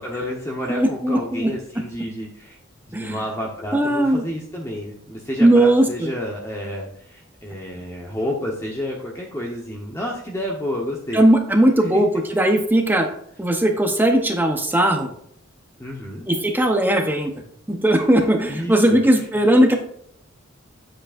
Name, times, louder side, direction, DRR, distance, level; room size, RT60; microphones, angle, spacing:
voice 1, 0.0-2.6 2.8-11.3 11.9-12.0 15.8-16.2 18.5-19.0, left 1 dB, 15° left, -2 dB, 0.9 m, -30 dB
voice 2, 0.7-1.5 2.9-3.2 3.7-4.2 5.4-6.1 11.1-13.1 13.4-15.1 16.3-17.3 17.7-19.8, right 1 dB, 10° right, 4 dB, 0.7 m, -18 dB
9.5 x 7.6 x 2.5 m, 0.68 s
head